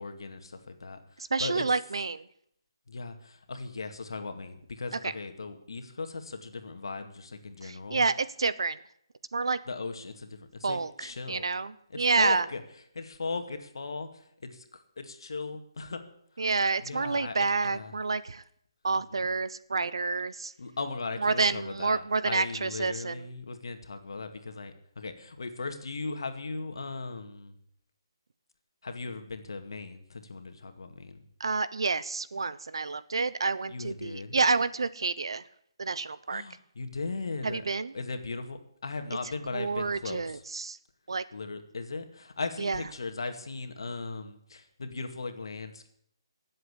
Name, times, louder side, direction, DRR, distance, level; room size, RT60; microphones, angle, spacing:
voice 1, 0.0-1.7 2.9-8.1 9.7-11.5 11.9-12.6 12.9-16.0 16.3-16.5 16.8-17.9 19.1-19.3 20.6-27.6 28.8-31.2 33.7-34.4 36.3-37.6 37.9-40.4 41.3-45.9, left 3 dB, 60° left, 7 dB, 2.2 m, -38 dB
voice 2, 1.2-2.2 5.0-5.1 7.6-8.8 9.3-9.6 10.6-12.4 16.4-18.4 18.8-20.5 21.2-23.3 31.4-35.4 35.8-36.4 37.4-37.9 39.5-40.8 41.1-41.2 42.6-42.8, right 4 dB, 70° right, 15 dB, 1.0 m, -29 dB
18.0 x 7.9 x 8.4 m, 0.68 s
hypercardioid pair, 180°, 3 cm